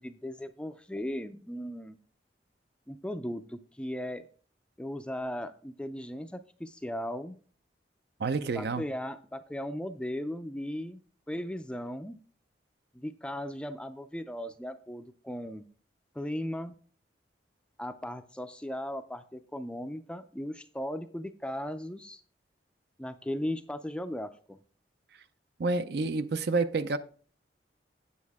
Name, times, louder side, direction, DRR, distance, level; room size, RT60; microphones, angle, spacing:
voice 1, 0.0-2.0 2.9-4.3 4.8-7.4 8.6-11.0 11.3-12.2 12.9-15.7 16.1-16.8 17.8-22.2 23.0-24.6, left 1 dB, 5° left, 0.4 m, -37 dB
voice 2, 8.2-8.8 25.6-27.0, right 3 dB, 60° right, 0.5 m, -29 dB
8.5 x 7.2 x 3.5 m
head